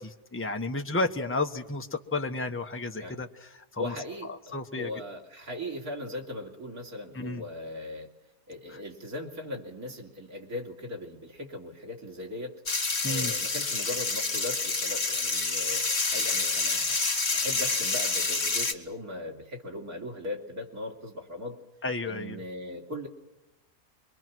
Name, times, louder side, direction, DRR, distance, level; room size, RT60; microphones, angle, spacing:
voice 1, 0.0-3.9 4.3-4.9 7.1-7.4 8.7-8.8 13.0-13.3 21.8-22.4, left 2 dB, 10° left, 4 dB, 1.0 m, -32 dB
voice 2, 3.8-8.1 8.5-12.6 13.0-21.6 22.1-23.1, left 1 dB, 80° right, 2 dB, 3.6 m, -39 dB
sound 1, 12.7-18.7, left 3 dB, 45° left, 2.0 m, -28 dB
25.5 x 23.0 x 6.2 m, 1.0 s
omnidirectional pair, 1.5 m